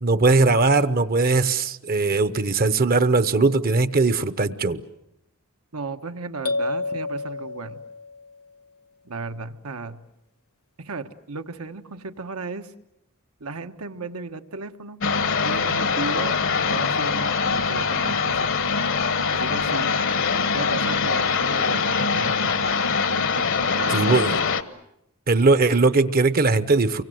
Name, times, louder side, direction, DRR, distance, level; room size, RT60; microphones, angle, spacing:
voice 1, 0.0-4.8 23.9-24.3 25.3-27.0, right 3 dB, 45° right, 14 dB, 0.9 m, -19 dB
voice 2, 5.7-7.8 9.0-10.0 10.8-12.7 13.4-15.0 15.4-18.5 19.3-20.0 20.5-22.6 23.3-24.4, right 4 dB, 80° right, 8 dB, 1.3 m, -35 dB
sound 1, 6.5-8.4, left 3 dB, 75° left, 1.3 m, -29 dB
sound 2, 15.0-24.6, left 5 dB, 60° left, 1.1 m, -23 dB
29.5 x 24.0 x 7.9 m, 0.84 s
head